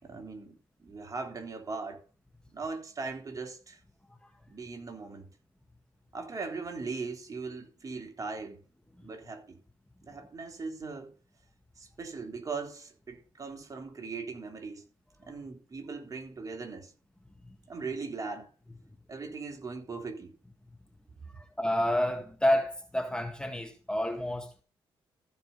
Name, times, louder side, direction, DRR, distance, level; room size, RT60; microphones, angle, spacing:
voice 1, 0.0-2.0 2.5-3.8 4.5-5.3 6.1-8.6 9.0-9.6 10.0-11.1 11.8-14.8 15.2-16.9 17.7-18.5 19.1-20.4, right 4 dB, 35° right, 3.1 m, -39 dB
voice 2, 21.6-24.6, left 1 dB, 10° left, 1.8 m, -29 dB
14.5 x 5.4 x 5.4 m
supercardioid pair, 70°, 10 cm